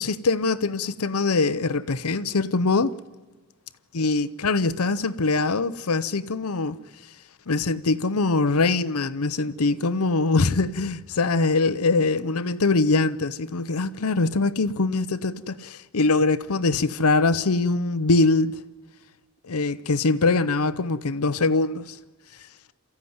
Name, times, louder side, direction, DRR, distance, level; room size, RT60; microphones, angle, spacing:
voice 1, 0.0-2.9 3.9-6.8 7.5-18.6 19.5-22.0, left 3 dB, 85° left, 0.8 m, -23 dB
27.0 x 14.5 x 9.6 m
head